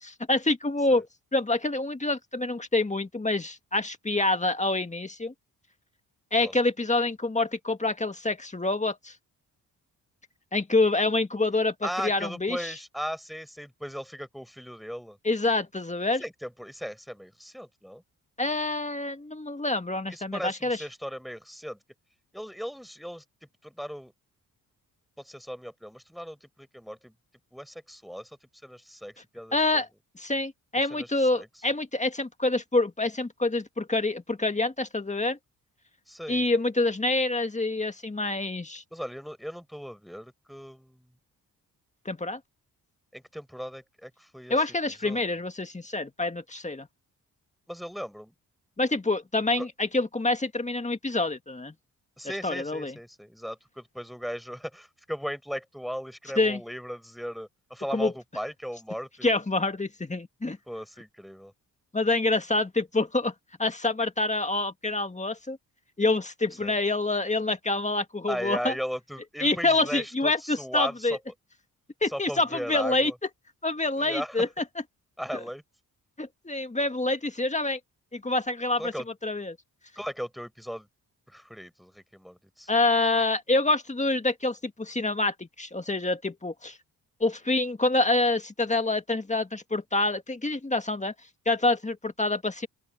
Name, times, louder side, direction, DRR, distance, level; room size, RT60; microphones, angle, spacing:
voice 1, 0.0-1.1 1.3-5.3 6.3-9.1 10.5-12.8 15.2-16.2 18.4-20.8 29.5-29.9 30.2-35.4 36.3-38.8 42.1-42.4 44.5-46.9 48.8-51.7 52.4-53.0 56.4-56.6 57.9-58.1 59.2-60.6 61.9-63.3 63.6-65.6 66.0-68.7 69.4-71.2 72.0-73.1 73.6-74.6 75.3-75.4 76.2-77.8 78.1-78.9 79.2-79.6 82.7-86.8 87.2-91.1 91.5-92.7, left 2 dB, 20° left, 1.9 m, -26 dB
voice 2, 11.8-15.2 16.2-18.0 20.1-21.8 22.3-23.2 23.6-24.1 25.2-27.1 27.5-28.3 28.6-29.8 30.9-31.5 36.1-36.4 38.9-41.1 43.1-44.6 45.0-45.2 47.7-48.3 49.6-49.7 52.2-59.3 60.7-61.5 66.6-66.8 68.3-71.2 72.1-73.1 74.0-74.5 75.2-75.6 78.8-79.1 80.0-80.9 81.3-82.7, equal, ahead, 5.3 m, -37 dB
open air
cardioid pair, 65°, 37 cm